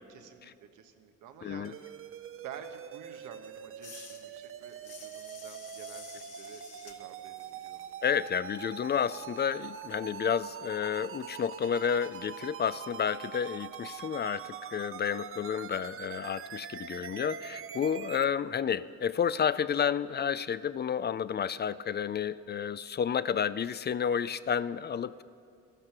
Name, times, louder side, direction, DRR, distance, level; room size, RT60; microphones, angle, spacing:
voice 1, 0.1-2.0 2.4-7.9, right 7 dB, 85° right, 6 dB, 1.2 m, -50 dB
voice 2, 1.4-1.7 8.0-25.2, left 7 dB, 35° left, 16 dB, 0.4 m, -31 dB
sound 1, 1.6-18.2, right 8 dB, 45° right, 0.6 m, -44 dB
sound 2, 3.8-9.3 9.6-14.5, left 6 dB, 55° left, 1.3 m, -54 dB
14.0 x 12.5 x 5.9 m, 2.4 s
cardioid pair, 90°, 30 cm